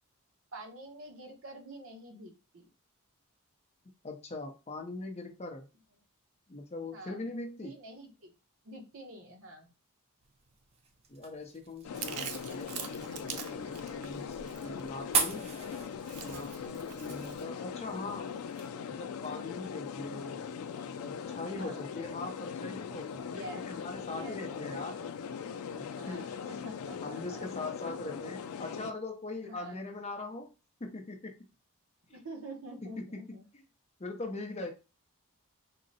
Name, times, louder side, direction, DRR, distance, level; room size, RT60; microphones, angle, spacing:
voice 1, 0.5-2.7 6.9-7.2 7.6-8.3 8.6-9.7 17.2-17.3 17.9-18.0 21.5-21.8 23.3-23.6 24.1-24.7 25.9-27.5 29.3-29.8 32.1-33.4 34.5-34.7, right 1 dB, 60° right, 3 dB, 0.9 m, -47 dB
voice 2, 4.0-5.7 6.5-7.7 11.1-15.5 16.2-18.4 19.0-20.4 21.0-25.1 25.8-26.4 27.0-30.5 30.8-31.4 32.8-33.6 34.0-34.7, left 2 dB, 30° left, 4 dB, 0.6 m, -41 dB
sound 1, 10.2-18.7, right 5 dB, 30° right, 0.4 m, -40 dB
sound 2, 11.8-28.9, left 7 dB, 75° left, 0.4 m, -40 dB
Chewing mastication, 11.9-17.4, right 8 dB, 90° right, 0.5 m, -45 dB
3.7 x 2.1 x 4.0 m, 0.29 s
head